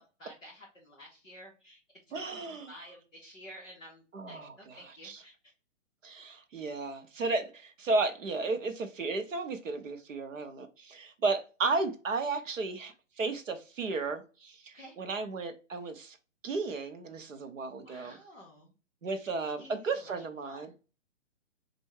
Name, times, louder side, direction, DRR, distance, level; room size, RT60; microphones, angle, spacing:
voice 1, 0.2-1.8 2.1-2.4 2.7-5.5 14.7-15.0 17.8-18.7 19.4-20.8, equal, 5° left, 0.6 m, -52 dB
voice 2, 2.1-2.7 4.1-4.5 5.0-5.2 6.0-16.2 16.4-18.1 19.0-20.7, right 3 dB, 90° right, 1.1 m, -34 dB
4.3 x 2.6 x 4.7 m
hypercardioid pair, 180°, 38 cm